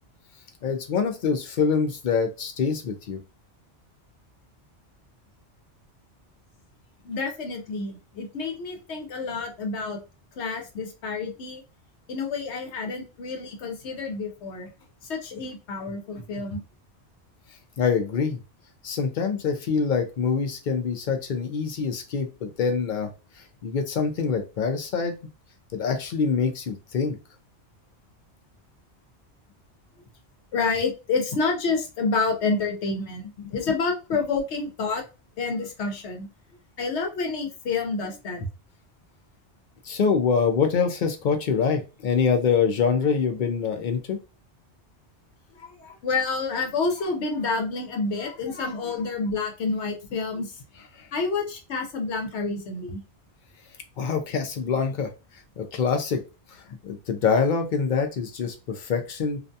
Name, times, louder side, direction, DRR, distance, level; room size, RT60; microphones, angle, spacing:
voice 1, 0.6-3.2 17.8-18.4 18.8-23.1 23.6-25.1 25.7-27.2 39.8-44.2 51.0-51.1 54.0-55.1 55.6-56.2 56.8-59.4, left 5 dB, 55° left, 6 dB, 0.6 m, -25 dB
voice 2, 7.0-10.0 10.4-11.6 12.1-14.7 15.0-16.6 30.5-35.0 35.4-36.3 36.8-38.5 45.6-50.6 51.1-53.0, left 4 dB, 80° left, 3 dB, 1.0 m, -28 dB
2.5 x 2.2 x 2.6 m, 0.30 s
omnidirectional pair, 1.2 m